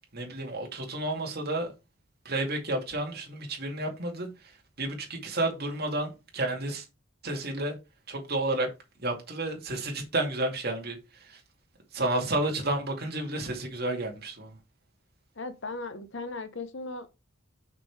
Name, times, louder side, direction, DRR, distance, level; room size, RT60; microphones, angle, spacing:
voice 1, 0.1-1.7 2.2-4.3 4.8-6.8 7.2-7.7 8.1-8.7 9.0-11.4 11.9-14.5, right 2 dB, 45° right, 2.3 m, -31 dB
voice 2, 15.4-17.1, left 3 dB, 55° left, 0.9 m, -37 dB
6.0 x 5.2 x 4.7 m
head